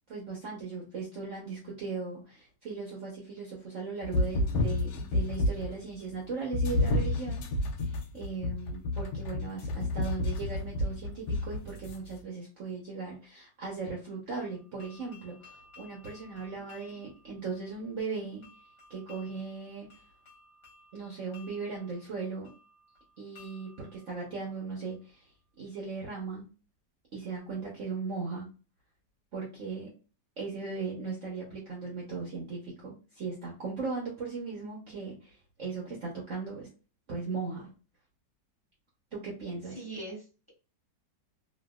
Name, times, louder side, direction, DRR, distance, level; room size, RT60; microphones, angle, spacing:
voice 1, 0.1-7.4 7.8-18.4 18.9-19.9 20.9-22.5 23.2-26.5 27.1-28.5 29.3-29.9 30.4-36.7 37.1-37.7 39.1-39.8, right 4 dB, 55° right, -3 dB, 1.0 m, -38 dB
sound 1, 4.0-5.8 6.5-12.0, left 2 dB, 75° left, 1.1 m, -30 dB
sound 2, 14.4-25.2, left 2 dB, 35° left, 1.3 m, -58 dB
voice 2, 39.7-40.5, right 2 dB, 15° left, -5 dB, 1.4 m, -41 dB
3.0 x 2.7 x 2.2 m, 0.34 s
omnidirectional pair, 1.9 m